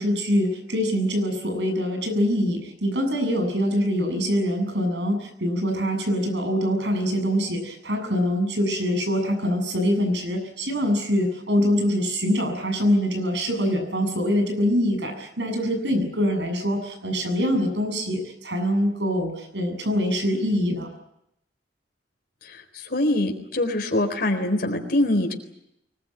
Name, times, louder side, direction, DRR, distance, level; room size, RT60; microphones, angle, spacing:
voice 1, 0.0-20.9, equal, 85° right, 5 dB, 7.6 m, -24 dB
voice 2, 22.5-25.3, left 1 dB, 60° left, 3 dB, 4.1 m, -24 dB
23.5 x 21.0 x 9.0 m, 0.79 s
head